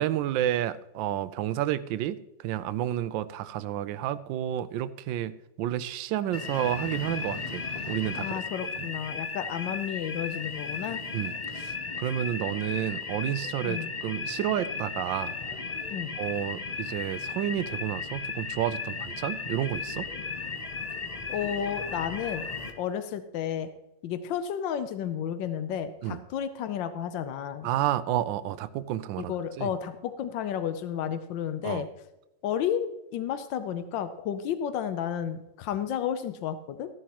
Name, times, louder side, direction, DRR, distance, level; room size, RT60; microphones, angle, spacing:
voice 1, 0.0-2.2 2.4-5.3 5.6-7.6 7.9-8.3 11.1-15.3 16.2-20.1 26.0-26.2 27.6-29.7 31.6-31.8, right 12 dB, 85° right, 15 dB, 1.3 m, -30 dB
sound 1, 6.3-22.7, left 4 dB, 35° left, 0.6 m, -35 dB
voice 2, 8.2-11.0 13.6-13.9 15.9-16.1 21.3-22.4 22.8-23.7 24.0-27.7 29.2-31.9 32.4-36.9, left 9 dB, 85° left, 11 dB, 1.4 m, -32 dB
14.5 x 11.0 x 3.0 m, 0.95 s
omnidirectional pair, 2.0 m